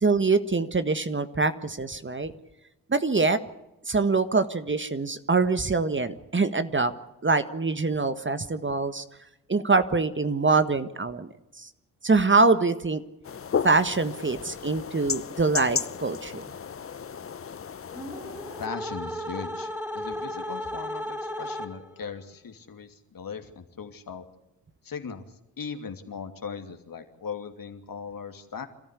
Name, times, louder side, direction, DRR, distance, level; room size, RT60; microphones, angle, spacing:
voice 1, 0.0-2.3 2.9-3.4 3.9-6.9 7.2-9.0 9.5-11.7 12.0-13.0 13.6-16.4, right 3 dB, 25° right, 11 dB, 1.6 m, -24 dB
sound 1, 13.2-18.7, left 7 dB, 30° left, 0.8 m, -34 dB
sound 2, 17.9-22.0, left 1 dB, 5° right, 4.2 m, -35 dB
voice 2, 18.6-24.3 24.8-25.2 25.6-28.7, left 6 dB, 50° left, 6 dB, 2.8 m, -38 dB
27.0 x 14.0 x 8.4 m, 0.95 s
hypercardioid pair, 40°, 43 cm